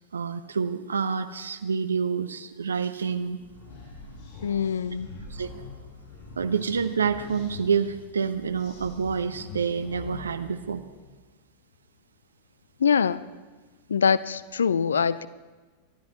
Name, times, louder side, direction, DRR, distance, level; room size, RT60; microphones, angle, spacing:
voice 1, 0.1-3.4 5.3-5.5 6.4-10.8, right 6 dB, 70° right, 10 dB, 0.5 m, -28 dB
sound 1, 3.1-11.2, left 3 dB, 45° left, 5.7 m, -44 dB
voice 2, 4.4-5.1 12.8-13.2 13.9-15.3, left 6 dB, 70° left, 18 dB, 0.4 m, -23 dB
25.0 x 12.0 x 3.0 m, 1.3 s
figure-of-eight pair, 90°, 0 cm